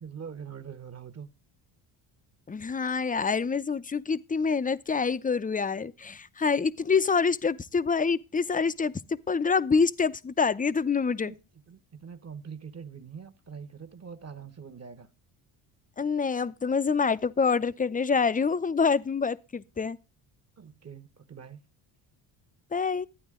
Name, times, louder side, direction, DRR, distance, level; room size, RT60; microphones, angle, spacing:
voice 1, 0.0-1.3 11.2-11.4 11.7-15.1 20.6-21.6, right 6 dB, 30° right, 1.2 m, -43 dB
voice 2, 2.5-8.9 9.3-11.3 16.0-20.0 22.7-23.1, left 5 dB, 15° left, 0.6 m, -26 dB
12.5 x 9.1 x 3.7 m
cardioid pair, 85°, 49 cm